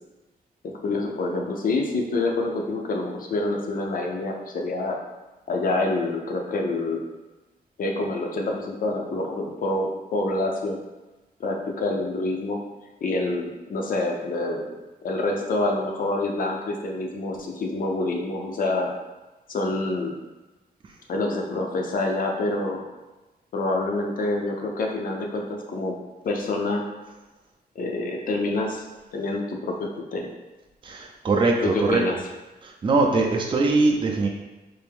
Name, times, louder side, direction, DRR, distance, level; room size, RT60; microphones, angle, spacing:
voice 1, 0.6-5.0 5.5-7.1 7.8-10.8 11.4-12.6 13.0-14.7 15.0-18.9 19.5-20.1 21.1-22.9 23.5-25.9 26.2-26.9 27.8-28.9 29.1-30.3 31.6-32.2, left 2 dB, 55° left, 1 dB, 0.6 m, -27 dB
voice 2, 30.8-32.0 32.6-34.3, right 3 dB, 30° right, 0 dB, 0.4 m, -22 dB
3.4 x 2.6 x 3.4 m, 1.1 s
wide cardioid pair, 155°, 17 cm